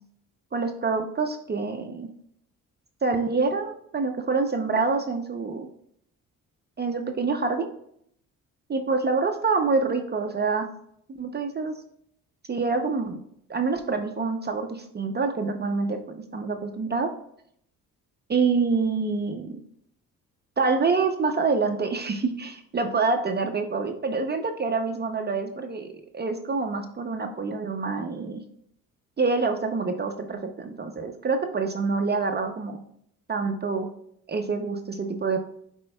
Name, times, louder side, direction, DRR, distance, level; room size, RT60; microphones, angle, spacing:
voice 1, 0.5-2.1 3.0-5.7 6.8-7.7 8.7-10.7 11.1-11.8 12.5-13.2 13.5-17.1 18.3-19.6 20.6-25.9 26.1-28.4 29.2-32.8 33.3-33.9 34.3-35.4, right 4 dB, 30° right, 5 dB, 0.6 m, -26 dB
9.7 x 4.4 x 2.2 m, 0.70 s
cardioid pair, 90°, 35 cm